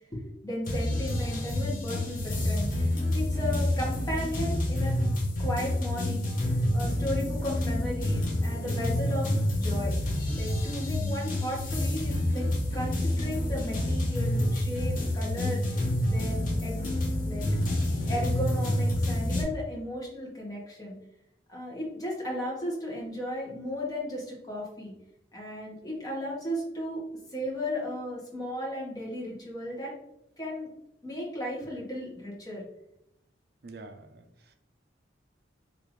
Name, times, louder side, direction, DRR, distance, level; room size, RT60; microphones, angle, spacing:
voice 1, 0.1-4.9 5.4-6.3 6.7-9.9 10.3-12.5 12.7-16.9 17.2-17.4 18.1-21.0 21.5-24.9 25.3-27.0 27.3-29.9 30.4-30.7 31.0-32.6, left 1 dB, 20° left, -5 dB, 1.2 m, -35 dB
sound 1, 0.7-19.4, left 1 dB, 45° left, 0.9 m, -28 dB
voice 2, 33.6-34.5, right 3 dB, 55° right, 7 dB, 0.4 m, -47 dB
4.0 x 2.9 x 3.1 m, 0.81 s
head